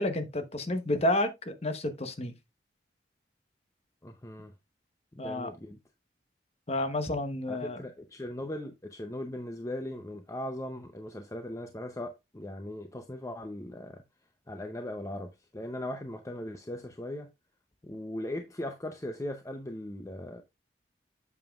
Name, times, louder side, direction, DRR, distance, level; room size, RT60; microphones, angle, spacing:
voice 1, 0.0-2.3 5.2-5.5 6.7-7.8, left 1 dB, 35° left, 1.0 m, -30 dB
voice 2, 4.0-4.5 5.2-5.8 7.5-14.0 14.5-17.3 17.8-20.4, left 1 dB, 15° left, 0.6 m, -39 dB
8.3 x 7.1 x 2.4 m
head